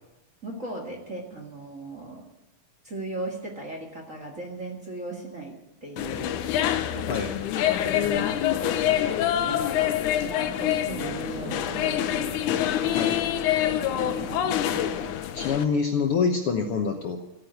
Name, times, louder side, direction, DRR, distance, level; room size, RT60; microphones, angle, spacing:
voice 1, 0.4-2.3 2.8-6.4 6.9-7.3 7.5-13.0 13.4-14.3, right 2 dB, 30° right, 1 dB, 1.7 m, -38 dB
sound 1, 6.0-15.6, left 11 dB, 85° left, 2.2 m, -26 dB
sound 2, 10.1-15.2, right 8 dB, 70° right, 2.1 m, -41 dB
voice 2, 15.3-17.2, left 5 dB, 60° left, 4 dB, 1.6 m, -25 dB
15.0 x 9.6 x 7.8 m, 0.97 s
omnidirectional pair, 3.5 m